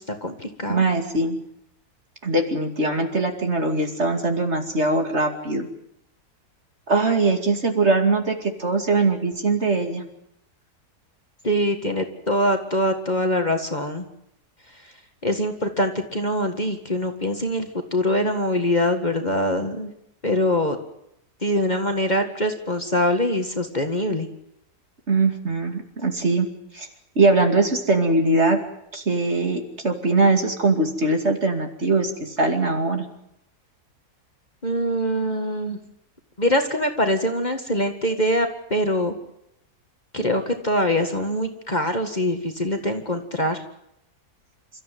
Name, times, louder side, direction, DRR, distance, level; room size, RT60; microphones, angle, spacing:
voice 1, 0.0-0.8 11.4-14.1 15.2-19.9 20.2-20.8 21.4-24.3 34.6-35.8 36.4-39.2 40.1-43.6, left 1 dB, 30° left, 5 dB, 1.9 m, -23 dB
voice 2, 0.7-1.4 2.2-5.7 6.9-10.0 25.1-26.5 26.7-26.9 27.2-28.6 28.9-33.1, right 3 dB, 45° right, 5 dB, 2.8 m, -21 dB
28.5 x 14.0 x 9.3 m, 0.80 s
omnidirectional pair, 1.7 m